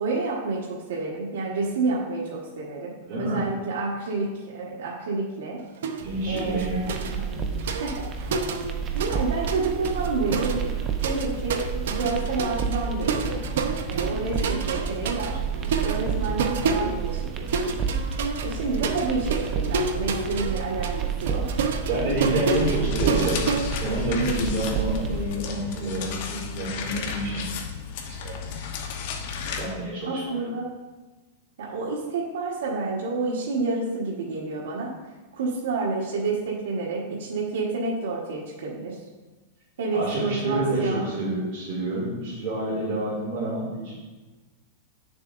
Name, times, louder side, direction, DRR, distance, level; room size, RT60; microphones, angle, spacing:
voice 1, 0.0-5.6 6.3-6.9 7.7-10.8 11.0-13.5 13.9-17.8 18.4-21.5 22.2-22.6 24.1-24.5 30.1-30.7 31.6-35.0 35.3-39.0 39.8-41.1, right 3 dB, 90° right, -4 dB, 1.3 m, -29 dB
voice 2, 3.0-3.4 6.0-7.5 21.9-23.4 23.8-27.6 28.1-28.6 29.6-30.2 39.9-44.0, right 1 dB, 40° right, -8 dB, 2.5 m, -28 dB
sound 1, 5.8-6.1 6.4-9.2 9.5-24.4, right 5 dB, 75° right, 0.6 m, -30 dB
sound 2, 6.0-25.2, right 6 dB, 20° right, 0.5 m, -30 dB
sound 3, 22.5-29.7, left 5 dB, 50° left, 0.9 m, -33 dB
9.4 x 6.9 x 2.6 m, 1.2 s
supercardioid pair, 160°, 0 cm